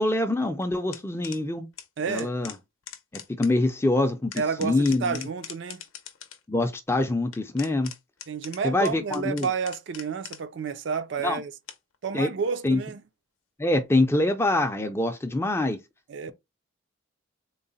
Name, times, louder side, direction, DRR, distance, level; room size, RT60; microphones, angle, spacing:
voice 1, 0.0-1.7 2.1-2.5 3.4-5.3 6.5-7.9 8.6-9.5 11.2-11.4 12.1-12.3 12.6-12.8 13.6-15.8, left 2 dB, 10° left, 0.4 m, -25 dB
sound 1, 0.6-1.4 1.7-1.9 2.1-3.5 4.0-6.4 7.3-10.6 11.7-12.1 13.7-13.8, left 9 dB, 80° left, 0.6 m, -42 dB
voice 2, 2.0-2.3 4.4-5.8 8.3-11.5 12.0-13.0 16.1-16.3, right 5 dB, 60° right, 0.4 m, -30 dB
3.8 x 2.1 x 3.9 m
head